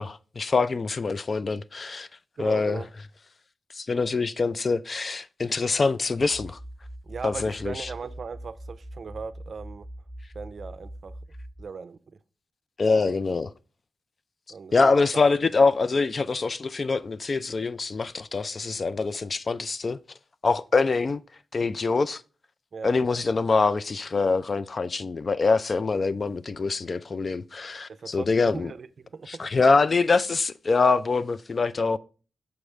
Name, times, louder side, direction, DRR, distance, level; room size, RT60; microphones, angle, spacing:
voice 1, 0.0-2.1 2.4-2.8 3.8-6.6 7.2-7.9 12.8-13.5 14.7-20.0 20.4-21.2 21.5-22.2 22.8-28.7 29.3-32.0, left 4 dB, 45° left, 0.4 m, -24 dB
voice 2, 2.4-2.9 7.0-9.9 10.3-11.2 11.6-12.0 13.0-13.2 14.5-15.2 22.7-23.0 27.9-29.5, right 5 dB, 60° right, 0.5 m, -38 dB
sound 1, 6.3-11.6, right 1 dB, 15° left, 1.0 m, -42 dB
7.0 x 4.9 x 3.2 m
cardioid pair, 80°, 0 cm